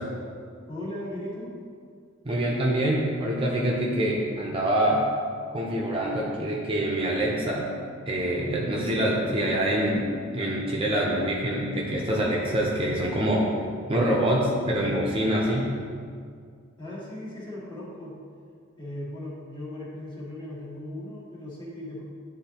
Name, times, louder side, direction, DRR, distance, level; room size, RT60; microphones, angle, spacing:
voice 1, 0.7-1.5 16.8-18.2 18.8-22.0, left 1 dB, 25° left, -7 dB, 1.6 m, -37 dB
voice 2, 2.2-5.0 5.5-7.7 8.1-13.5 13.9-15.7, right 1 dB, 25° right, -2 dB, 0.6 m, -25 dB
9.8 x 3.7 x 2.9 m, 2.2 s
head